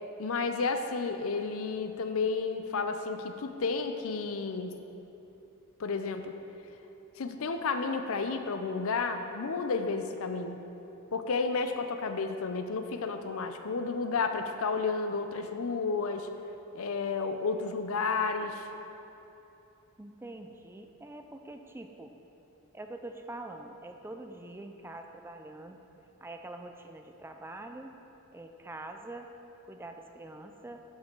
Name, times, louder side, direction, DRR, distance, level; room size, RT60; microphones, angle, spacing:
voice 1, 0.2-4.8 5.8-6.4 7.2-10.6 11.1-16.3 16.7-18.7, left 4 dB, 65° left, 7 dB, 0.6 m, -31 dB
voice 2, 20.0-22.1 22.7-25.8 26.2-27.9 28.3-29.3 29.7-30.8, right 2 dB, 10° right, 5 dB, 0.4 m, -44 dB
12.0 x 5.6 x 4.5 m, 3.0 s
head